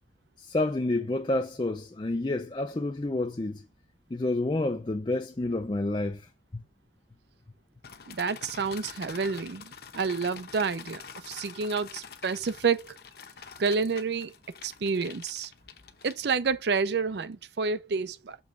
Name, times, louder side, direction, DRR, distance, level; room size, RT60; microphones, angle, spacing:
voice 1, 0.4-3.6 4.1-6.3 6.5-6.6, left 2 dB, 25° left, 0.5 m, -29 dB
sound 1, 7.8-16.6, left 6 dB, 55° left, 0.8 m, -46 dB
voice 2, 8.1-13.0 13.6-14.3 14.6-15.5 16.0-18.4, right 5 dB, 65° right, 0.5 m, -29 dB
7.0 x 3.4 x 5.1 m
head